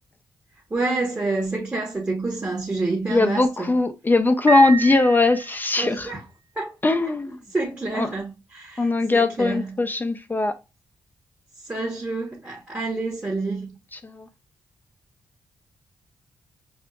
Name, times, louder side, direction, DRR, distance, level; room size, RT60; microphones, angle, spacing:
voice 1, 0.7-3.7 5.8-6.2 6.6-6.8 7.5-9.8 11.6-13.7, right 3 dB, 25° right, 1.0 m, -28 dB
voice 2, 3.1-6.1 6.8-7.4 7.9-8.1 8.8-10.6 14.0-14.3, left 3 dB, 25° left, 0.4 m, -20 dB
Piano, 4.5-5.9, right 5 dB, 50° right, 1.2 m, -29 dB
5.2 x 2.3 x 2.3 m
cardioid pair, 80°, 8 cm